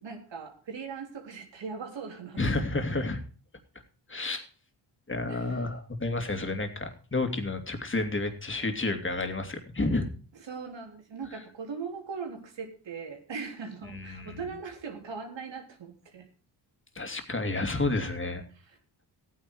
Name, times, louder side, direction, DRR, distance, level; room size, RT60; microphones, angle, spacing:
voice 1, 0.0-2.6 5.3-5.7 10.3-16.3 18.6-18.8, right 5 dB, 70° right, 3 dB, 3.5 m, -40 dB
voice 2, 2.4-3.2 4.1-4.4 5.1-10.1 13.9-14.4 17.0-18.4, left 2 dB, 25° left, 6 dB, 2.7 m, -30 dB
14.5 x 9.5 x 4.7 m, 0.40 s
cardioid pair, 65°, 46 cm